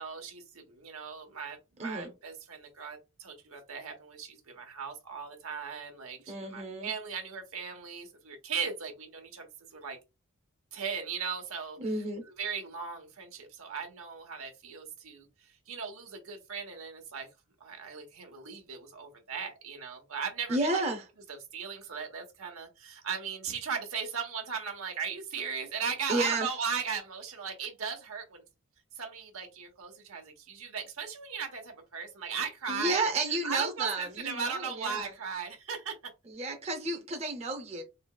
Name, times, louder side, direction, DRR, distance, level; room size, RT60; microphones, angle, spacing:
voice 1, 0.0-10.0 10.7-11.8 12.2-17.3 17.6-20.8 21.3-28.4 28.9-36.0, right 6 dB, 90° right, 1.1 m, -37 dB
voice 2, 1.8-2.1 6.3-6.9 11.8-12.2 20.5-21.0 26.1-26.5 32.7-35.1 36.3-37.8, right 2 dB, 30° right, 0.6 m, -32 dB
3.9 x 2.9 x 2.3 m
head